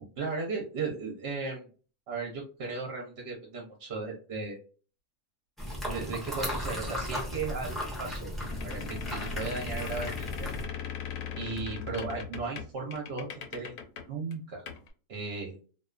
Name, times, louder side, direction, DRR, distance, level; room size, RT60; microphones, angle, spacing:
voice 1, 0.2-1.7 2.1-4.6 5.8-8.3 8.6-10.5 11.3-13.7 14.1-14.6 15.1-15.6, right 4 dB, 60° right, 0 dB, 0.7 m, -36 dB
sound 1, 5.6-10.6, equal, ahead, 0.4 m, -36 dB
sound 2, 8.4-14.1 14.3-14.4 14.7-14.9, left 7 dB, 75° left, 1.0 m, -39 dB
2.4 x 2.3 x 2.3 m, 0.39 s
omnidirectional pair, 1.5 m